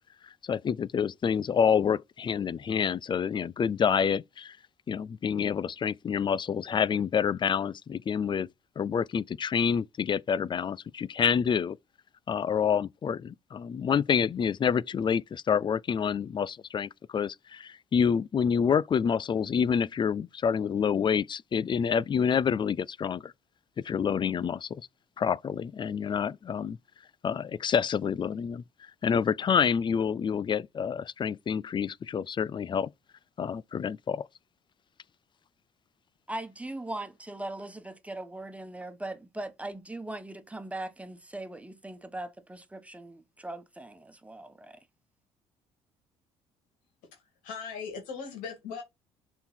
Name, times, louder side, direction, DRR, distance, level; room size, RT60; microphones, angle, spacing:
voice 1, 0.4-4.6 4.9-8.5 8.8-11.8 12.3-23.3 23.8-24.8 25.2-26.8 27.2-28.6 29.0-32.9 33.4-34.3, left 7 dB, 35° left, 0.5 m, -28 dB
voice 2, 36.3-44.8, right 2 dB, 10° right, 1.4 m, -40 dB
voice 3, 47.1-48.8, left 6 dB, 80° left, 2.6 m, -39 dB
6.7 x 3.9 x 4.3 m
supercardioid pair, 65°, 14 cm